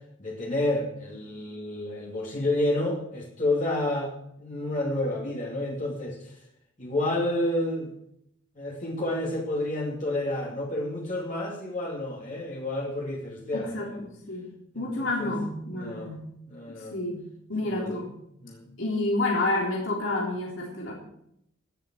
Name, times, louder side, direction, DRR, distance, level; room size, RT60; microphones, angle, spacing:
voice 1, 0.2-4.1 4.4-6.4 6.8-7.9 8.6-14.0 14.7-15.3 15.7-16.1 16.4-17.0 17.6-18.1 18.4-18.7, left 1 dB, 40° left, -2 dB, 2.7 m, -30 dB
voice 2, 13.5-14.5 14.8-16.3 16.9-17.2 17.5-18.1 18.8-21.0, left 2 dB, 65° left, -2 dB, 3.6 m, -29 dB
18.0 x 7.5 x 7.6 m, 0.76 s
head